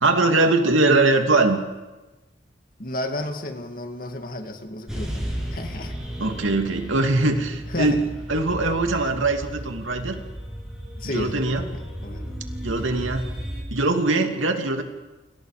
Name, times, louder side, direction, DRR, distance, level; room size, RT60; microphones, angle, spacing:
voice 1, 0.0-1.6 6.2-8.0 8.3-10.2 11.0-11.6 12.6-13.3 13.7-14.8, right 2 dB, 85° right, 4 dB, 2.6 m, -21 dB
voice 2, 2.8-5.9 7.7-8.0 11.0-12.4, left 1 dB, 45° left, 5 dB, 2.3 m, -32 dB
sound 1, 4.9-13.6, equal, 5° right, 7.9 m, -34 dB
29.0 x 26.0 x 5.1 m, 1.1 s
head